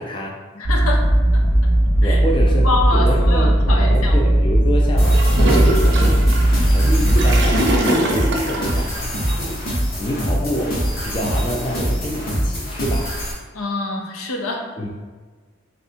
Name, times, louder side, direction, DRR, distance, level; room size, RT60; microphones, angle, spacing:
voice 1, 0.0-0.4 2.0-6.3 6.6-13.2 14.8-14.9, equal, 20° left, -1 dB, 0.3 m, -27 dB
voice 2, 0.5-1.4 2.0-2.2 2.4-4.3 13.5-14.7, left 2 dB, 80° left, 1 dB, 0.6 m, -26 dB
sound 1, 0.6-7.5, right 1 dB, 60° left, 1.3 m, -16 dB
sound 2, 5.0-13.3, equal, 40° left, 1.0 m, -24 dB
Gurgling / Toilet flush, 5.1-8.9, right 1 dB, 50° right, 0.6 m, -23 dB
3.4 x 2.6 x 4.3 m, 1.4 s
head